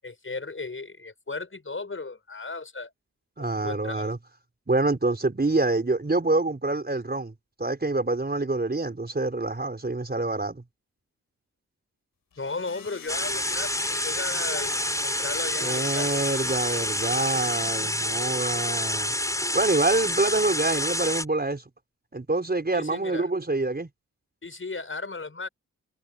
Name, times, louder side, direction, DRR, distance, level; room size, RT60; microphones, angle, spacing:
voice 1, 0.0-2.9 3.4-4.1 12.4-14.7 15.0-16.1 22.7-23.3 24.4-25.5, left 3 dB, 35° left, 6.0 m, -35 dB
voice 2, 3.4-4.2 4.7-7.3 7.6-10.6 15.6-19.1 19.5-21.6 22.1-23.9, right 2 dB, 30° right, 5.4 m, -26 dB
sound 1, 12.3-18.2, left 7 dB, 75° left, 5.8 m, -43 dB
sound 2, 13.1-21.2, left 1 dB, 10° left, 4.6 m, -28 dB
cardioid pair, 55°, 34 cm